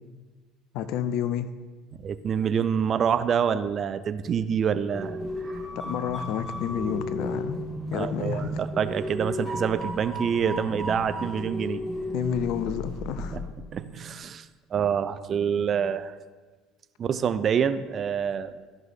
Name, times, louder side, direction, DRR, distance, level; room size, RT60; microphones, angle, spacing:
voice 1, 0.7-1.5 5.8-7.6 7.9-8.5 12.1-13.4, left 9 dB, 65° left, 12 dB, 0.5 m, -30 dB
voice 2, 2.0-5.2 7.9-11.8 13.3-14.5 14.7-16.1 17.0-18.5, right 7 dB, 45° right, 12 dB, 0.5 m, -26 dB
sound 1, 4.9-13.5, equal, 15° left, 3.2 m, -34 dB
14.0 x 5.4 x 3.7 m, 1.4 s
hypercardioid pair, 65°, 0 cm